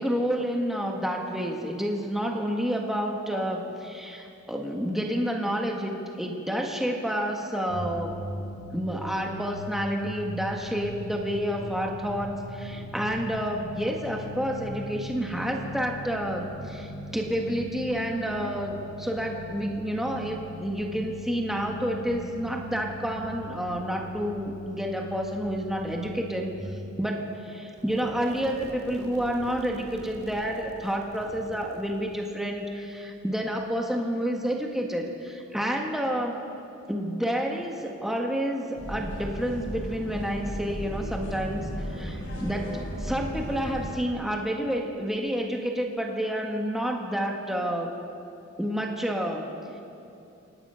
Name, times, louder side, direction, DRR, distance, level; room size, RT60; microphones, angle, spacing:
voice 1, 0.0-8.1 8.7-26.5 27.0-36.4 36.9-47.9 48.6-49.4, equal, ahead, 1 dB, 1.5 m, -29 dB
sound 1, 7.7-26.6, left 1 dB, 45° left, 4.3 m, -40 dB
sound 2, 27.7-33.7, right 1 dB, 50° right, 2.1 m, -46 dB
sound 3, 38.8-43.9, equal, 60° left, 6.6 m, -35 dB
26.0 x 19.0 x 5.7 m, 2.7 s
head